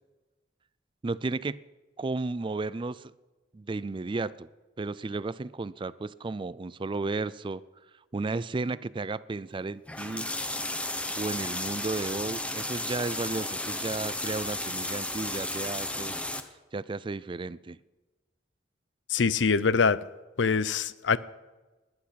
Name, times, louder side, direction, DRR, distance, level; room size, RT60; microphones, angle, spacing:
voice 1, 1.0-1.6 2.0-3.1 3.5-4.5 4.8-7.6 8.1-10.3 11.2-16.1 16.7-17.8, right 3 dB, 25° right, 18 dB, 0.4 m, -33 dB
sound 1, 9.9-16.4, left 1 dB, 5° left, 1.0 m, -33 dB
voice 2, 19.1-20.0 20.4-21.2, left 5 dB, 75° left, 17 dB, 0.6 m, -24 dB
20.0 x 11.0 x 5.8 m, 1.2 s
head